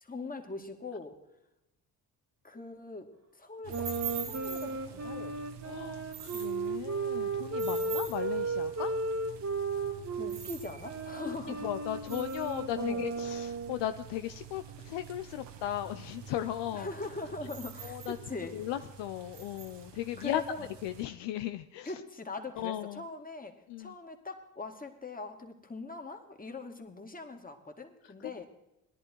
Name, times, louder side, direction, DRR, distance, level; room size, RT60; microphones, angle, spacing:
voice 1, 0.0-1.1 2.4-5.4 7.7-8.0 10.1-11.7 12.8-13.1 16.7-18.6 20.2-20.7 21.9-28.5, left 3 dB, 20° left, 4 dB, 2.3 m, -42 dB
sound 1, 3.6-21.0, right 7 dB, 65° right, 1.6 m, -46 dB
sound 2, 3.7-10.4 10.8-13.8, right 3 dB, 35° right, 1.7 m, -34 dB
voice 2, 5.6-9.0 11.2-16.9 17.8-18.2 18.5-20.4 20.8-21.9 22.5-23.1 23.7-23.9 28.2-28.3, left 12 dB, 70° left, 9 dB, 0.7 m, -36 dB
17.5 x 11.0 x 4.6 m, 0.91 s
hypercardioid pair, 50°, 45 cm